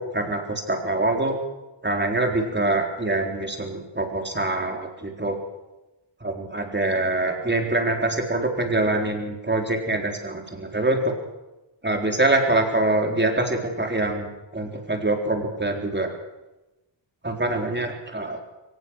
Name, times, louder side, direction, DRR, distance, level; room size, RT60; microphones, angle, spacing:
voice 1, 0.0-1.4 1.8-5.4 6.2-11.1 11.8-16.1 17.2-18.4, right 2 dB, 25° right, 3 dB, 4.1 m, -24 dB
23.0 x 19.0 x 6.4 m, 1.0 s
wide cardioid pair, 85°, 45 cm